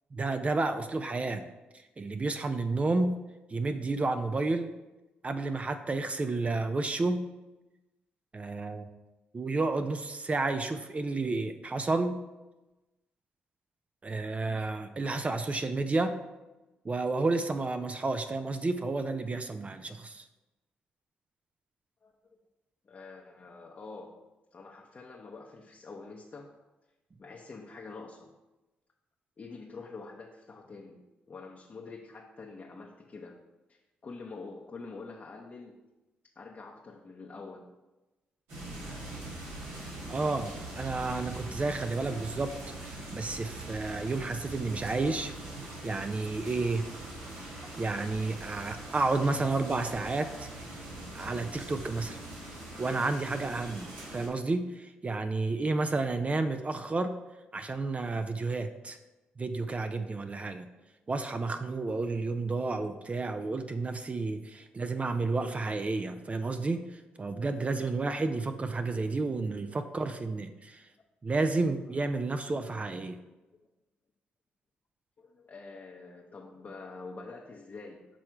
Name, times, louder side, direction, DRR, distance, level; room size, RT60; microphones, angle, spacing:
voice 1, 0.1-1.5 1.7-3.2 3.5-4.7 5.2-7.2 8.3-8.9 9.3-12.2 14.0-16.2 16.8-20.3 40.1-45.3 45.8-46.9 47.8-50.5 51.1-52.2 52.8-57.1 57.5-59.0 59.4-60.7 61.1-70.9 71.2-73.2, right 3 dB, 35° right, 8 dB, 0.5 m, -31 dB
voice 2, 22.0-22.4 22.8-24.2 24.5-26.5 27.2-28.3 29.4-31.0 31.3-33.4 33.7-35.7 36.4-37.7 64.5-64.6 67.6-67.7 69.8-69.9 75.2-78.1, left 3 dB, 45° left, -1 dB, 0.8 m, -46 dB
sound 1, 38.5-54.3, right 2 dB, 85° right, 2.1 m, -42 dB
6.2 x 3.2 x 5.7 m, 1.1 s
supercardioid pair, 55°, 4 cm